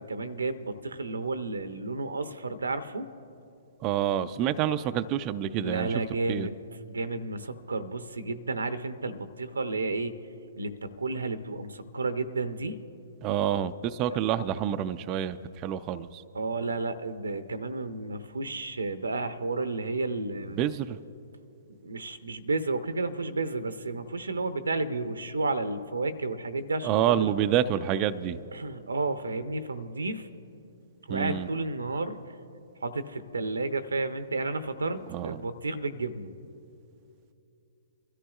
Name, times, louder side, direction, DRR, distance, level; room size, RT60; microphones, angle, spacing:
voice 1, 0.0-3.1 5.6-6.6 6.9-10.1 10.6-12.8 14.1-14.2 16.3-20.6 21.8-26.9 27.2-27.5 28.5-30.3 31.1-32.2 32.8-36.3, right 3 dB, 85° right, 11 dB, 0.7 m, -32 dB
voice 2, 3.8-5.9 6.3-6.5 13.2-16.2 20.6-21.0 26.8-28.4 31.1-31.5 35.1-35.4, right 10 dB, 30° right, 10 dB, 0.4 m, -28 dB
24.5 x 13.5 x 2.4 m, 2.7 s
hypercardioid pair, 125°, 0 cm